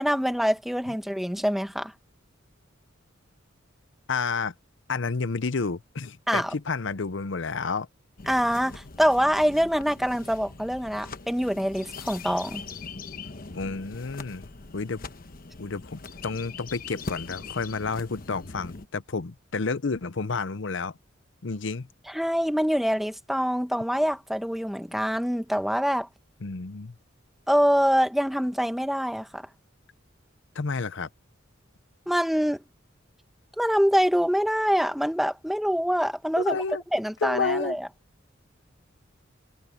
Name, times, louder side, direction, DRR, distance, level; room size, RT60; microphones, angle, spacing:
voice 1, 0.0-1.9 6.3-6.5 8.3-12.6 22.1-26.1 27.5-29.5 32.1-32.6 33.6-36.6 36.9-37.9, equal, ahead, 1.4 m, -25 dB
voice 2, 4.1-4.5 4.9-7.9 13.5-15.0 15.6-21.0 21.4-21.9 26.4-26.9 30.5-31.1 36.4-36.8 37.2-37.8, left 4 dB, 65° left, 0.7 m, -30 dB
sound 1, 8.2-18.9, left 4 dB, 45° left, 1.1 m, -41 dB
head